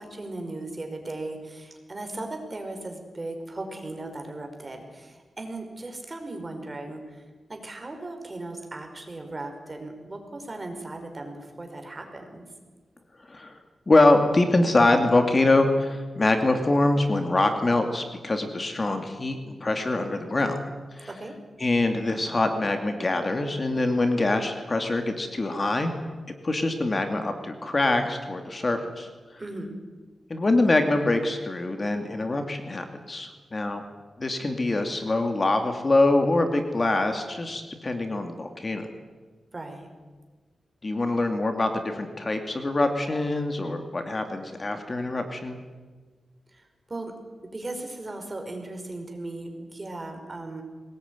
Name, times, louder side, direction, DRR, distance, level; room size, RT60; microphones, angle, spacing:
voice 1, 0.0-7.2 7.5-12.4 21.1-21.3 29.4-29.7 39.5-39.9 46.5-47.1 47.5-50.6, right 2 dB, 30° right, 4 dB, 5.2 m, -37 dB
voice 2, 13.9-20.6 20.9-21.1 21.6-25.9 26.4-29.1 30.3-33.8 34.2-38.9 40.8-45.6, left 2 dB, 35° left, 6 dB, 2.5 m, -24 dB
22.5 x 19.5 x 9.7 m, 1.4 s
wide cardioid pair, 95°, 0 cm